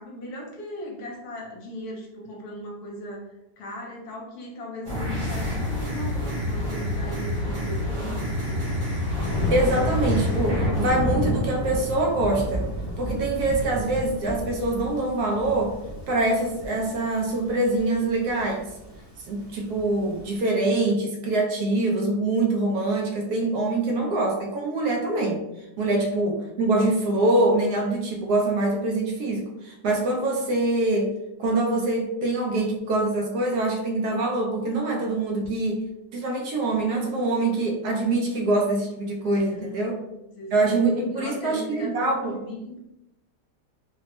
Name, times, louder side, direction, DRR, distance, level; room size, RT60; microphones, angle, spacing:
voice 1, 0.0-8.6 23.8-24.2 39.5-40.7 41.1-42.8, equal, 70° left, -2 dB, 1.2 m, -38 dB
sound 1, 4.8-10.9, left 1 dB, 35° right, 0.8 m, -28 dB
Thunder, 9.1-20.2, equal, 35° left, 0.6 m, -30 dB
voice 2, 9.2-12.7 13.0-15.8 16.1-18.7 19.3-25.4 25.8-31.1 31.4-35.8 36.1-40.0 40.5-42.3, right 2 dB, 75° right, 1 dB, 1.1 m, -24 dB
3.3 x 2.0 x 2.9 m, 0.91 s
omnidirectional pair, 1.8 m